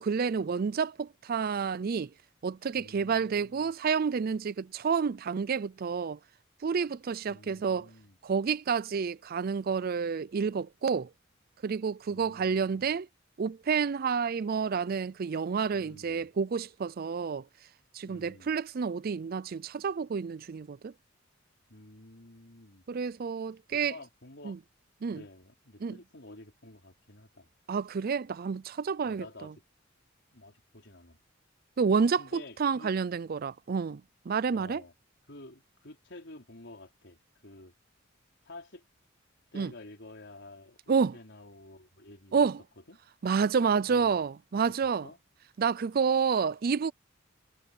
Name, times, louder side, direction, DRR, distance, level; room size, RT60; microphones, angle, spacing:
voice 1, 0.0-2.1 2.4-6.2 6.6-7.9 8.2-11.1 11.6-13.1 13.4-17.4 17.9-20.9 22.9-23.9 24.4-24.6 25.0-25.2 25.8-25.9 27.7-29.5 31.8-34.0 34.3-34.8 39.5-39.7 40.9-41.1 42.3-42.6 43.2-45.1 45.6-46.9, right 6 dB, 50° right, 0.4 m, -29 dB
voice 2, 2.8-3.7 7.3-8.2 12.1-13.0 15.7-16.3 18.1-18.6 21.7-22.8 23.7-24.6 25.1-27.5 29.0-29.5 30.3-31.2 32.2-32.9 34.5-34.9 35.3-37.7 38.4-38.8 39.5-42.5 42.9-43.0 43.9-44.2 44.8-45.2, left 2 dB, 65° left, 4.4 m, -50 dB
head